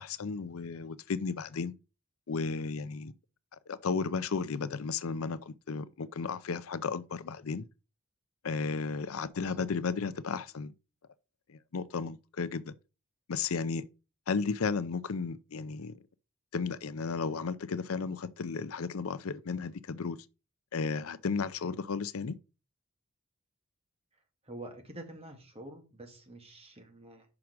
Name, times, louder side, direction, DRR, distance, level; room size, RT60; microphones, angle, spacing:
voice 1, 0.0-1.7 2.3-3.1 3.7-7.7 8.4-10.7 11.5-12.7 13.3-13.9 14.3-16.0 16.5-20.2 20.7-22.4, left 5 dB, 90° left, 0.6 m, -34 dB
voice 2, 24.4-27.3, right 1 dB, 30° right, 2.1 m, -47 dB
6.0 x 4.9 x 6.0 m
head